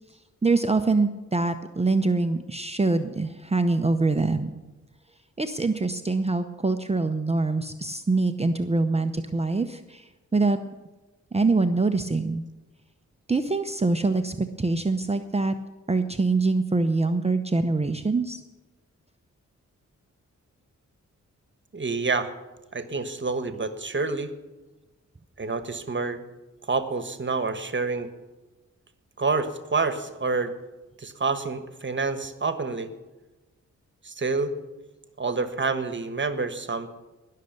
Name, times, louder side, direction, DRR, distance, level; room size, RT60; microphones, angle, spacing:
voice 1, 0.4-4.5 5.4-10.6 11.3-12.4 13.3-15.5 15.9-18.4, right 3 dB, 20° right, 7 dB, 0.7 m, -24 dB
voice 2, 21.7-22.3 22.7-24.3 25.4-26.2 26.7-28.1 29.2-30.5 31.0-32.9 34.0-34.5 35.2-36.9, right 4 dB, 40° right, 10 dB, 1.3 m, -28 dB
19.5 x 6.7 x 6.7 m, 1.1 s
cardioid pair, 75°, 30 cm